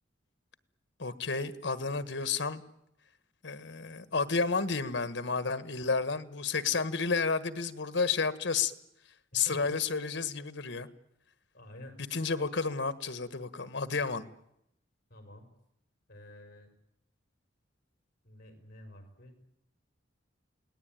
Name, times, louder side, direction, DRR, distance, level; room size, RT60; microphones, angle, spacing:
voice 1, 1.0-2.6 3.4-8.7 9.3-10.9 12.1-14.2, left 4 dB, 70° left, 12 dB, 1.5 m, -31 dB
voice 2, 11.5-12.0 15.1-15.5 16.1-16.7 18.2-19.5, left 1 dB, 50° left, 6 dB, 5.7 m, -50 dB
29.0 x 18.5 x 9.2 m, 0.79 s
head